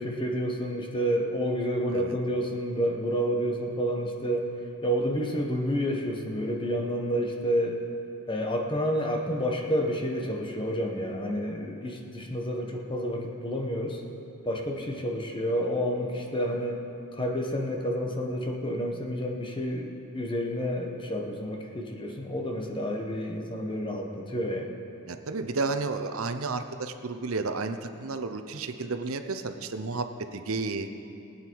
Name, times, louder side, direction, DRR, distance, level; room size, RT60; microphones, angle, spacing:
voice 1, 0.0-4.5 4.8-7.8 8.3-14.0 14.4-16.8 17.1-24.7, equal, 20° left, 2 dB, 1.2 m, -29 dB
voice 2, 25.1-30.9, right 3 dB, 75° right, 8 dB, 0.7 m, -32 dB
21.0 x 8.9 x 4.7 m, 2.7 s
head